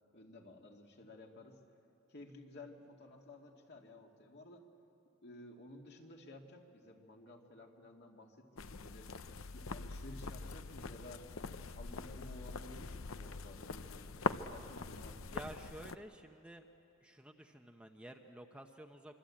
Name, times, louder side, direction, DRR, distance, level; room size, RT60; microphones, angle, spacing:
voice 1, 0.1-1.6 2.1-4.7 5.2-9.1 9.5-11.3 11.7-15.3, left 1 dB, 50° left, 2 dB, 2.5 m, -54 dB
sound 1, 8.6-16.0, left 4 dB, 70° left, 0.8 m, -43 dB
voice 2, 15.3-16.7 17.0-19.2, right 1 dB, 5° right, 4 dB, 0.8 m, -51 dB
25.5 x 25.5 x 8.8 m, 3.0 s
head